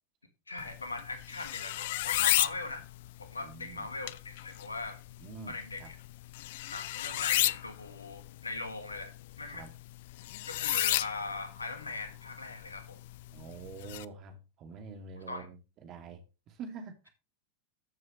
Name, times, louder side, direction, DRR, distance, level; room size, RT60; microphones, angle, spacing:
voice 1, 0.5-2.8 3.2-5.0 5.5-6.0 6.7-9.7 10.5-13.0 15.3-15.5, left 3 dB, 85° left, 2.0 m, -40 dB
sound 1, 0.6-14.0, left 16 dB, 60° left, 0.5 m, -34 dB
voice 2, 3.4-3.9 5.2-5.9 9.5-9.7 13.3-17.1, right 5 dB, 40° right, 2.7 m, -46 dB
13.5 x 7.7 x 3.3 m
figure-of-eight pair, 85°, 0 cm